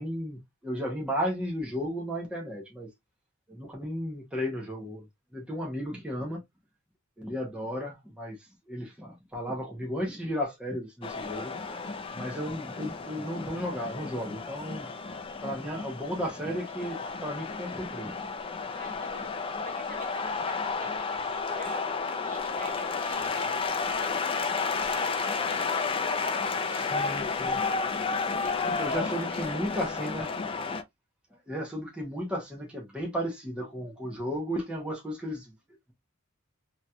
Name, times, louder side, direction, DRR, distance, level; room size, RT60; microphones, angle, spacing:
voice 1, 0.0-2.9 3.5-5.1 5.3-6.4 7.2-11.5 11.8-14.9 15.4-18.1 26.7-27.6 28.8-30.3 31.5-35.5, equal, 5° right, 0.8 m, -34 dB
sound 1, 11.0-30.8, left 4 dB, 25° left, 0.4 m, -32 dB
voice 2, 18.7-23.6 23.9-25.2 25.5-26.6 28.0-29.6, right 1 dB, 40° right, 1.1 m, -47 dB
3.0 x 2.8 x 2.2 m
head